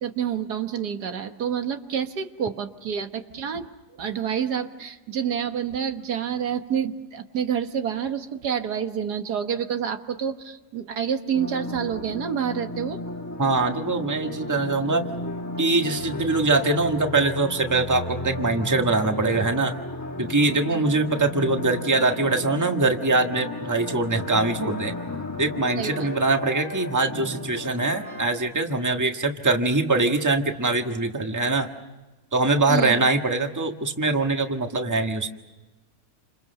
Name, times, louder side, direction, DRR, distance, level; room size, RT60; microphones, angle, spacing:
voice 1, 0.0-3.7 3.9-13.0 20.7-20.9 25.8-26.1 32.7-33.1, right 8 dB, 75° right, 7 dB, 1.8 m, -28 dB
sound 1, 11.3-28.3, left 2 dB, 10° left, 2.3 m, -34 dB
voice 2, 13.4-15.0 15.6-19.8 20.2-24.9 25.4-31.7 32.3-35.3, right 3 dB, 10° right, 5 dB, 1.4 m, -23 dB
29.0 x 27.0 x 6.7 m, 1.2 s
omnidirectional pair, 1.7 m